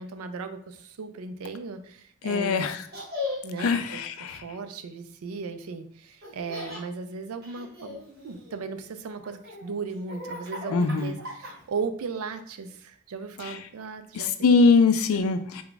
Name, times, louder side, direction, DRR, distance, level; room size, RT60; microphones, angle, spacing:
voice 1, 0.0-2.7 3.4-14.5 15.1-15.3, right 4 dB, 85° right, 9 dB, 0.4 m, -36 dB
voice 2, 2.2-2.8 3.6-4.4 10.7-11.1 13.4-13.6 14.1-15.6, left 4 dB, 75° left, 10 dB, 0.4 m, -22 dB
Laughter, 2.9-3.7 6.2-6.8 7.4-8.7 9.2-11.8, left 3 dB, 50° right, 1.0 m, -38 dB
3.4 x 2.3 x 3.8 m, 0.64 s
head